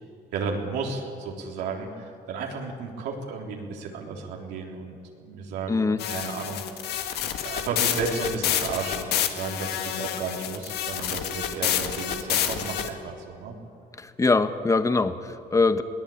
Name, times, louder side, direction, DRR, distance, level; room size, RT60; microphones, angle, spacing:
voice 1, 0.3-7.1 7.4-13.5, right 4 dB, 85° right, 0 dB, 3.7 m, -33 dB
voice 2, 5.7-6.0 14.0-15.8, left 3 dB, 20° left, 10 dB, 1.2 m, -23 dB
sound 1, 6.0-12.9, left 10 dB, 75° left, 1.8 m, -28 dB
21.5 x 18.5 x 8.7 m, 2.5 s
cardioid pair, 110°, 17 cm